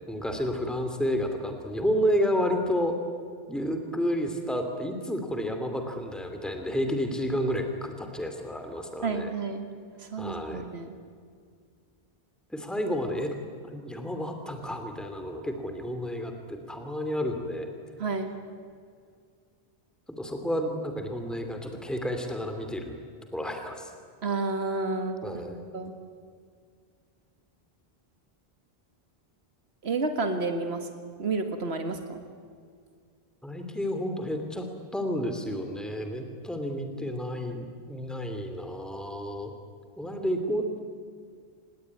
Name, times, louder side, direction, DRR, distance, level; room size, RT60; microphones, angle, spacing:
voice 1, 0.1-3.0 3.5-9.3 10.2-10.6 12.5-13.4 13.6-17.7 20.2-23.0 23.3-23.9 25.2-25.6 33.4-34.6 34.9-39.5 40.0-40.8, equal, ahead, 5 dB, 2.7 m, -31 dB
voice 2, 9.0-9.7 10.0-11.0 18.0-18.3 24.2-25.2 25.7-25.9 29.8-30.9 31.2-32.2, right 3 dB, 80° right, 6 dB, 1.9 m, -30 dB
26.0 x 21.0 x 9.6 m, 2.1 s
omnidirectional pair, 1.1 m